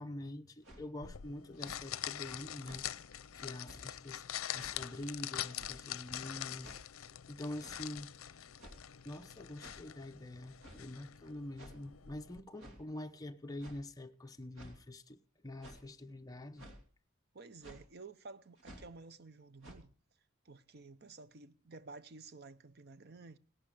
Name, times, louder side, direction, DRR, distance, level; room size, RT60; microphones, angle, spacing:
voice 1, 0.0-2.8 3.3-4.2 4.5-6.7 7.3-8.1 9.0-15.2 15.4-16.7, left 1 dB, 15° left, 0.8 m, -45 dB
sound 1, 0.6-0.8 1.5-1.8 2.6-2.9 3.6-3.8 4.6-4.8 5.6-5.8 6.6-6.8 7.6-7.8 8.6-8.9 9.6-9.8 10.6-10.8 11.6-11.8 12.6-12.8 13.6-13.8 14.6-14.8 15.6-15.9 16.6-16.8 17.6-17.8 18.6-18.9 19.6-19.8, right 1 dB, 70° right, 2.8 m, -53 dB
sound 2, 1.0-12.4, left 11 dB, 80° left, 0.6 m, -44 dB
voice 2, 17.3-19.9 20.4-23.4, right 3 dB, 50° right, 0.7 m, -52 dB
17.5 x 11.5 x 4.9 m
head